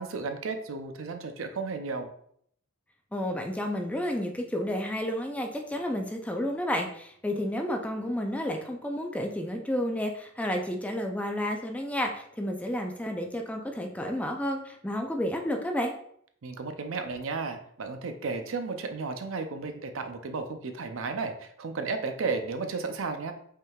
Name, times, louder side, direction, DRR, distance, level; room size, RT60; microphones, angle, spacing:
voice 1, 0.0-2.1 16.4-23.3, right 4 dB, 70° right, 7 dB, 0.5 m, -33 dB
voice 2, 3.1-15.9, left 1 dB, 5° left, 3 dB, 0.4 m, -31 dB
5.4 x 3.7 x 2.3 m, 0.67 s
head